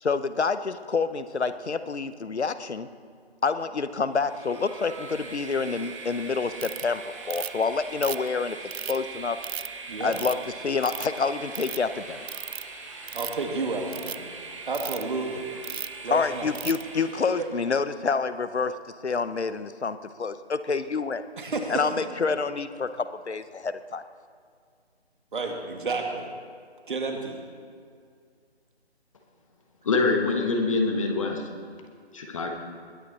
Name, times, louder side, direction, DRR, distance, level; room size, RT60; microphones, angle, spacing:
voice 1, 0.0-2.9 3.4-8.6 8.9-9.4 10.0-10.4 10.6-12.3 16.1-18.7 19.0-21.2 21.7-24.0, left 4 dB, 80° left, 12 dB, 0.9 m, -27 dB
Train, 4.1-17.6, right 4 dB, 30° right, 1.7 m, -41 dB
Ratchet pawl, 6.6-6.8 7.3-7.6 8.0-9.0 9.4-9.7 10.1-10.4 10.8-11.2 11.5-11.8 12.3-12.6 13.0-13.4 13.9-14.2 14.7-15.0 15.6-16.0 16.5-16.8, right 8 dB, 70° right, 0.4 m, -35 dB
voice 2, 9.9-10.2 13.1-14.3 14.7-15.5 16.0-16.5 17.4-17.5 21.4-21.9 25.3-26.3 26.9-27.4, right 3 dB, 50° right, 3 dB, 2.1 m, -31 dB
voice 3, 29.8-31.4 32.1-32.5, left 3 dB, 30° left, 3 dB, 1.3 m, -24 dB
20.5 x 10.0 x 4.2 m, 2.1 s
figure-of-eight pair, 155°, 33 cm